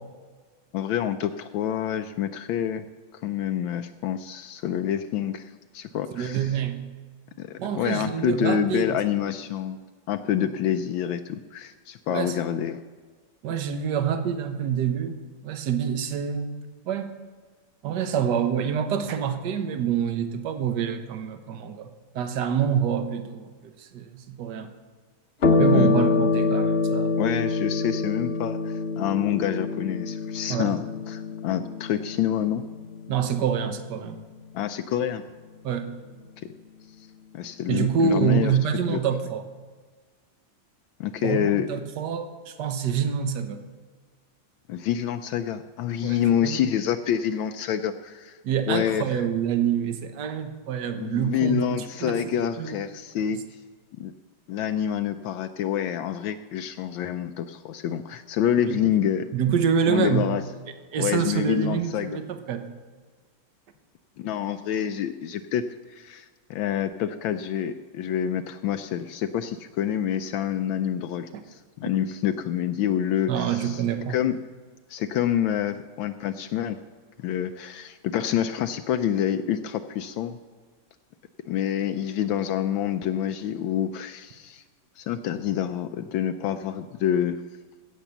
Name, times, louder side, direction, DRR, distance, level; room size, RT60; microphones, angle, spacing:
voice 1, 0.7-2.9 3.2-6.5 7.4-9.8 10.1-12.8 25.7-26.0 27.2-32.6 34.5-35.2 36.4-36.5 37.3-38.6 38.9-39.0 41.0-41.7 44.7-48.4 48.7-49.3 51.0-53.6 54.0-54.1 54.5-59.3 59.9-60.4 61.0-62.2 64.2-73.8 74.1-74.4 74.9-76.8 77.2-80.4 81.5-84.6 85.0-87.4, left 10 dB, 80° left, 8 dB, 1.3 m, -27 dB
voice 2, 6.1-6.8 7.6-9.0 10.4-10.5 12.1-12.3 13.4-16.5 16.8-17.1 17.8-24.7 25.6-27.2 30.5-30.7 33.1-34.2 35.6-35.9 37.7-39.4 41.2-43.7 46.0-46.2 46.4-46.6 48.4-51.7 52.0-52.2 52.6-52.8 53.3-53.4 58.7-58.9 59.3-60.3 60.9-62.7 71.3-71.4 73.3-74.2, right 8 dB, 65° right, 8 dB, 1.5 m, -26 dB
sound 1, 25.4-34.3, left 4 dB, 45° left, 0.9 m, -26 dB
16.0 x 6.5 x 6.9 m, 1.5 s
omnidirectional pair, 2.2 m